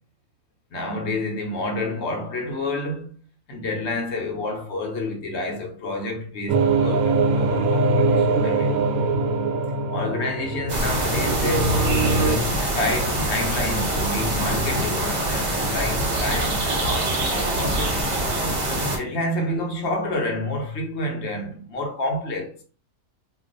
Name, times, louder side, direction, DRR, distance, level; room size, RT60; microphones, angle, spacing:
voice 1, 0.7-3.1 3.5-8.7 9.9-18.3 18.7-22.5, left 2 dB, 60° left, 1.0 m, -29 dB
sound 1, 6.5-12.4, right 3 dB, 85° right, 1.0 m, -22 dB
sound 2, 10.7-19.0, right 1 dB, 35° right, 0.8 m, -24 dB
2.5 x 2.3 x 3.8 m
omnidirectional pair, 1.5 m